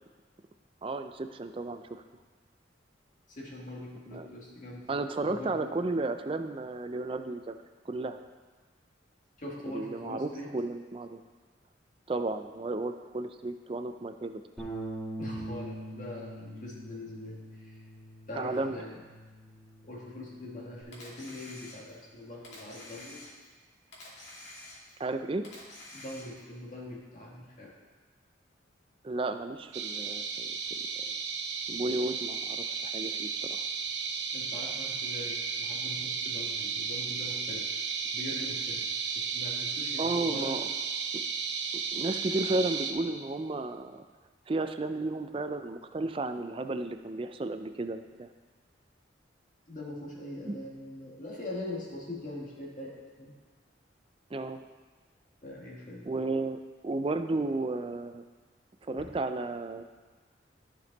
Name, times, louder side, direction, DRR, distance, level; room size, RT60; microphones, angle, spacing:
voice 1, 0.8-2.0 4.1-4.3 4.9-7.6 7.9-8.2 9.7-11.2 12.1-14.4 18.3-18.8 25.0-25.5 29.0-31.1 31.7-33.6 40.0-40.7 41.1-41.2 41.7-44.0 44.5-48.3 50.4-50.6 54.3-54.6 56.1-58.2 58.8-59.8, right 2 dB, 30° right, 8 dB, 0.4 m, -33 dB
voice 2, 3.3-4.9 5.2-5.7 9.4-10.6 15.2-17.8 18.3-19.0 19.8-23.3 25.9-27.8 34.3-37.8 38.1-40.6 49.7-53.3 55.4-56.1 59.0-59.1, left 1 dB, 45° left, -3 dB, 1.7 m, -42 dB
Bass guitar, 14.6-20.8, right 1 dB, 5° left, 2.7 m, -43 dB
Camera, 20.9-22.1 22.4-23.6 23.9-25.1 25.4-26.5, left 2 dB, 65° left, 2.4 m, -48 dB
sound 1, 29.7-42.9, right 6 dB, 65° right, 0.7 m, -34 dB
13.5 x 5.2 x 4.0 m, 1.4 s
head